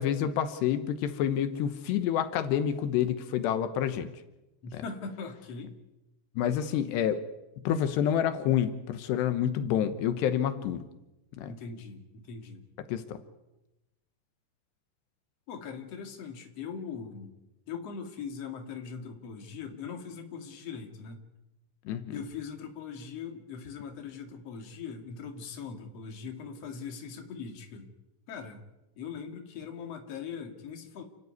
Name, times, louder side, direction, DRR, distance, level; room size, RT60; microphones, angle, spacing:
voice 1, 0.0-4.1 4.7-4.8 6.4-7.2 7.6-10.9 11.4-11.5 12.9-13.2 21.9-22.2, left 9 dB, 80° left, 9 dB, 3.2 m, -28 dB
voice 2, 4.6-5.7 11.4-12.6 15.5-17.3 17.7-21.2 22.1-27.9 28.3-28.6 29.0-31.0, left 6 dB, 40° left, 3 dB, 3.0 m, -41 dB
30.0 x 12.5 x 9.5 m, 0.99 s
omnidirectional pair, 4.8 m